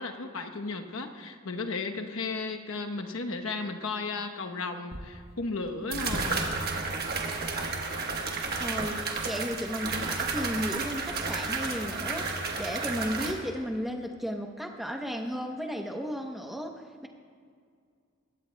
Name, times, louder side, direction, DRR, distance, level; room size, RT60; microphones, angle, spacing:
voice 1, 0.0-6.5, left 3 dB, 75° left, 4 dB, 1.0 m, -34 dB
sound 1, 4.9-5.0 5.9-13.3, right 3 dB, 45° right, 1.2 m, -32 dB
voice 2, 8.6-9.0 9.2-17.1, equal, ahead, 2 dB, 0.8 m, -34 dB
20.5 x 16.5 x 2.2 m, 2.2 s
head